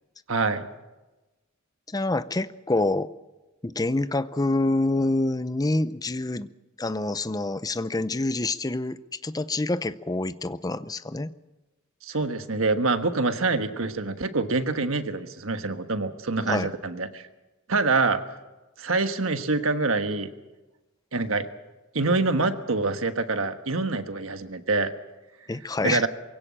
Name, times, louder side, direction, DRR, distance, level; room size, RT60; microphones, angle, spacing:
voice 1, 0.3-0.7 12.0-17.3 17.7-18.2 18.8-20.3 21.1-21.5 21.9-24.9 25.8-26.1, right 3 dB, 90° right, 8 dB, 1.4 m, -25 dB
voice 2, 1.9-3.1 3.6-6.5 6.8-11.3 16.5-16.7 25.5-26.1, left 2 dB, 20° left, 14 dB, 0.6 m, -27 dB
23.0 x 17.0 x 7.5 m, 1.1 s
head